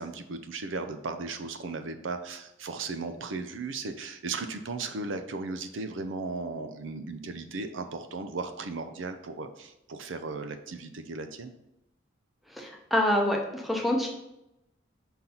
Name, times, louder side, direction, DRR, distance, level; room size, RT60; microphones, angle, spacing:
voice 1, 0.0-11.5, right 3 dB, 85° right, 8 dB, 0.5 m, -36 dB
voice 2, 12.6-14.1, left 1 dB, ahead, 1 dB, 0.8 m, -26 dB
5.5 x 4.0 x 4.3 m, 0.87 s
head